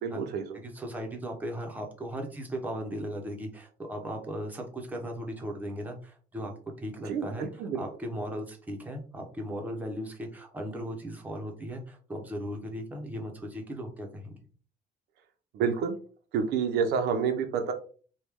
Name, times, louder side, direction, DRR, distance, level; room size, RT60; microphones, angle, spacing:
voice 1, 0.0-0.6 7.0-7.8 15.5-16.0 16.3-17.7, right 6 dB, 75° right, 6 dB, 0.6 m, -28 dB
voice 2, 0.6-6.5 6.8-14.4, equal, 10° right, 1 dB, 0.8 m, -37 dB
3.1 x 2.3 x 3.5 m, 0.41 s
cardioid pair, 110°, 17 cm